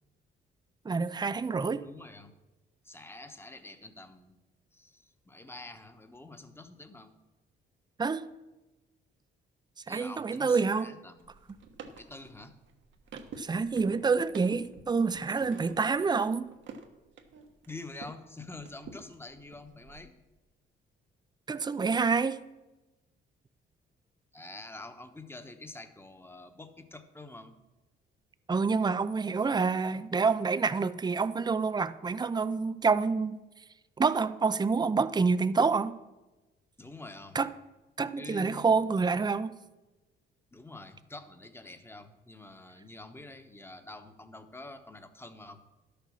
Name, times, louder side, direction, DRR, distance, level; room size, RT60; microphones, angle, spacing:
voice 1, 0.8-1.8 8.0-8.3 9.9-10.9 13.4-16.5 21.5-22.4 28.5-33.4 34.0-36.0 37.3-37.5 38.0-39.6, right 4 dB, 20° right, 0.5 m, -27 dB
voice 2, 1.8-2.3 2.8-4.4 4.7-7.2 9.9-11.4 11.9-12.6 17.7-20.1 24.3-27.5 36.8-37.4 38.1-38.7 40.5-45.6, left 2 dB, 10° left, 1.1 m, -47 dB
sound 1, 11.2-18.2 18.5-20.0, right 4 dB, 70° right, 1.3 m, -48 dB
11.5 x 6.8 x 6.4 m
cardioid pair, 90°, 20 cm